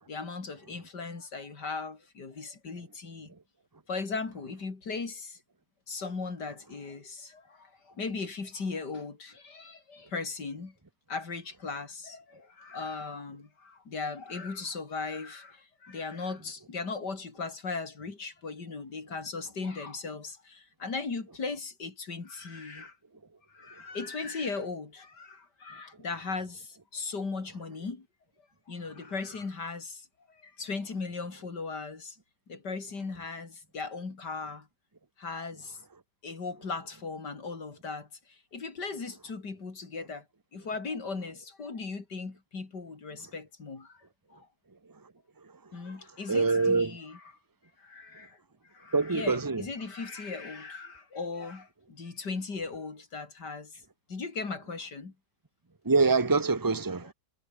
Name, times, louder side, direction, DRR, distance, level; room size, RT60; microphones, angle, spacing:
voice 1, 0.1-3.3 3.9-5.4 5.9-10.7 11.1-23.0 23.5-28.1 28.7-32.2 32.5-34.7 35.2-35.8 36.2-40.2 40.5-44.0 44.3-44.5 45.7-47.2 47.8-48.4 48.7-53.8 54.1-55.1, left 4 dB, 80° left, 3.9 m, -38 dB
voice 2, 46.3-47.0 48.9-49.6 55.8-57.1, right 4 dB, 15° right, 1.4 m, -25 dB
omnidirectional pair, 1.8 m